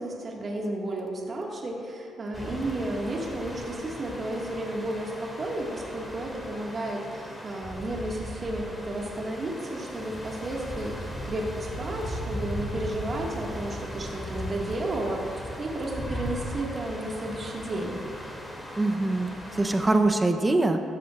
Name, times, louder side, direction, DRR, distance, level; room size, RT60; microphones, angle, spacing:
voice 1, 0.0-18.0, right 1 dB, 40° right, -2 dB, 2.0 m, -32 dB
sound 1, 2.3-20.0, equal, 15° left, 2.9 m, -38 dB
voice 2, 18.8-20.8, right 2 dB, 20° right, 6 dB, 0.9 m, -23 dB
15.5 x 13.5 x 2.6 m, 2.5 s
cardioid pair, 90°, 0 cm